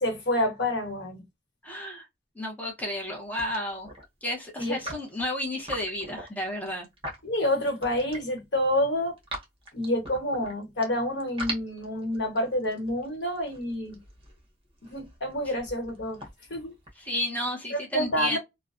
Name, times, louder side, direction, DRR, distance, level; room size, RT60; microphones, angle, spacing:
voice 1, 0.0-1.2 4.6-4.9 7.2-9.1 9.7-14.0 14.9-16.2 16.5-16.7 17.7-18.4, left 1 dB, 85° left, 1.1 m, -28 dB
voice 2, 1.6-2.1 2.4-3.9 4.2-6.9 15.4-15.5 17.0-18.4, left 1 dB, 10° left, 0.7 m, -32 dB
sound 1, 2.9-3.1 3.4-4.0 4.7-8.4 8.8-10.8 11.2-17.3, right 1 dB, 35° right, 0.9 m, -41 dB
2.4 x 2.1 x 2.4 m
head